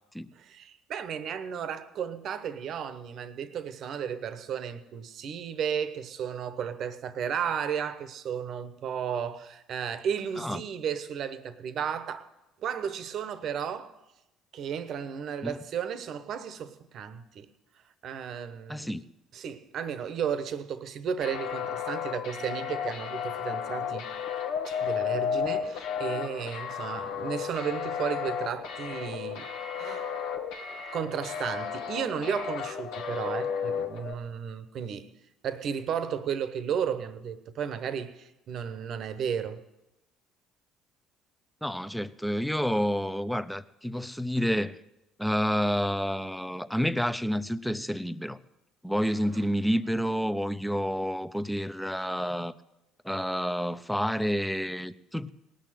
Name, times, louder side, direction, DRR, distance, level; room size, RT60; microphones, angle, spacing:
voice 1, 0.3-12.3 12.6-13.9 14.5-17.5 18.0-18.9 19.3-24.1 24.7-29.5 29.8-30.1 30.9-35.1 35.4-39.6 49.1-49.4, right 7 dB, 60° right, 1.0 m, -34 dB
voice 2, 18.7-19.0 41.6-44.8 45.2-48.4 48.8-52.5 53.0-55.3, equal, ahead, 0.7 m, -29 dB
sound 1, 21.2-34.1, left 7 dB, 75° left, 1.2 m, -33 dB
18.5 x 6.5 x 9.1 m
hypercardioid pair, 65°, 0 cm